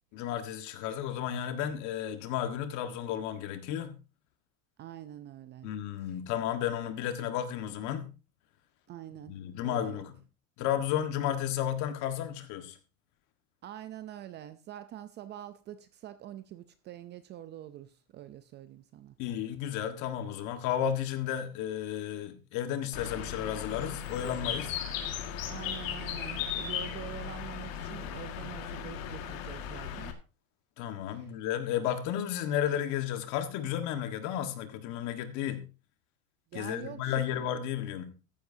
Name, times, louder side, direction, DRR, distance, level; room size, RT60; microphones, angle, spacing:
voice 1, 0.1-4.0 5.6-8.1 9.3-10.2 10.6-12.8 19.2-24.8 30.8-35.6 36.5-38.1, left 10 dB, 45° left, 1.6 m, -33 dB
voice 2, 4.8-5.7 8.9-9.3 9.6-10.0 13.6-19.2 25.5-30.1 31.1-31.3 36.5-37.2, right 12 dB, 25° right, 0.5 m, -45 dB
Bird, 22.9-30.1, left 8 dB, 75° left, 1.9 m, -37 dB
14.0 x 11.0 x 2.7 m
supercardioid pair, 145°, 41 cm